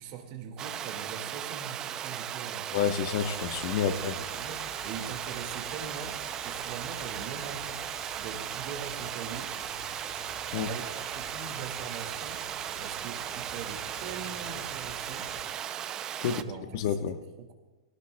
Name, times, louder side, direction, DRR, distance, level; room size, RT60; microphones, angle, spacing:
voice 1, 0.0-2.8 4.1-9.5 10.5-15.3 16.2-16.6 17.4-17.5, right 6 dB, 40° right, 5 dB, 1.9 m, -42 dB
Water, 0.6-16.4, right 10 dB, 20° right, 0.4 m, -37 dB
voice 2, 2.7-4.2 10.5-10.7 16.2-16.4 16.7-17.2, left 8 dB, 50° left, 8 dB, 1.1 m, -29 dB
sound 1, 3.1-15.5, left 3 dB, 15° left, 2.5 m, -48 dB
22.5 x 18.0 x 2.2 m, 1.1 s
supercardioid pair, 155°, 3 cm